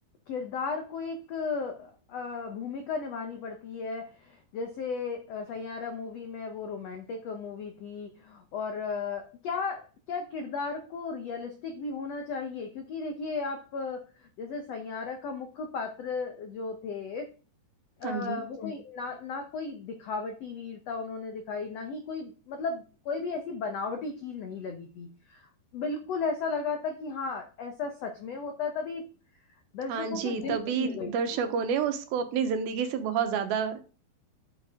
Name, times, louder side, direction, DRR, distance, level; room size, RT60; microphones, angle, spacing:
voice 1, 0.3-17.3 18.0-29.1 29.7-31.5, left 4 dB, 80° left, 5 dB, 1.4 m, -35 dB
voice 2, 18.0-18.4 29.9-33.8, right 7 dB, 75° right, 8 dB, 2.9 m, -29 dB
10.5 x 8.0 x 3.7 m, 0.34 s
omnidirectional pair, 4.6 m